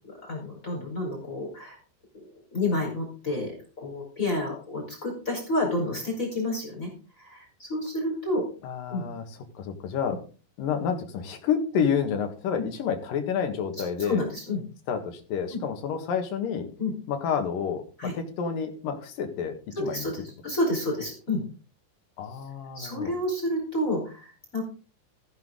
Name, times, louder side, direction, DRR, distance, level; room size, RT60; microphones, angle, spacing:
voice 1, 0.3-1.8 2.1-6.9 7.2-8.5 8.9-9.0 10.1-10.2 12.6-12.7 13.7-14.6 15.5-15.6 16.8-16.9 18.0-18.1 19.8-21.4 22.7-24.6, left 1 dB, 20° left, 0 dB, 4.7 m, -30 dB
voice 2, 8.6-9.2 9.6-10.2 10.6-14.3 14.9-16.7 17.1-17.8 18.1-19.5 19.8-20.1 22.2-23.1, left 7 dB, 60° left, 6 dB, 3.0 m, -29 dB
15.5 x 10.5 x 3.9 m, 0.36 s
omnidirectional pair, 5.0 m